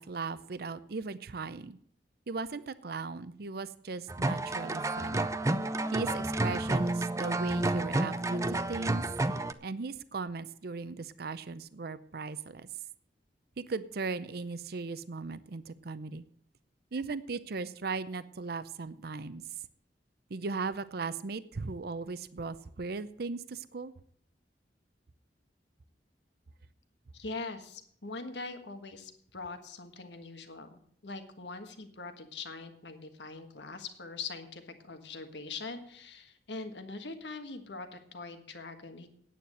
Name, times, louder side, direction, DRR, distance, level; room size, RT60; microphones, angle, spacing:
voice 1, 0.0-1.8 2.3-5.3 5.9-9.0 9.6-12.7 13.6-16.2 16.9-19.4 20.3-23.9, right 4 dB, 60° right, 15 dB, 0.6 m, -38 dB
sound 1, 4.1-9.5, right 2 dB, 20° right, 0.5 m, -30 dB
voice 2, 27.1-39.1, left 3 dB, 80° left, 7 dB, 1.6 m, -42 dB
9.4 x 8.9 x 7.8 m, 0.64 s
head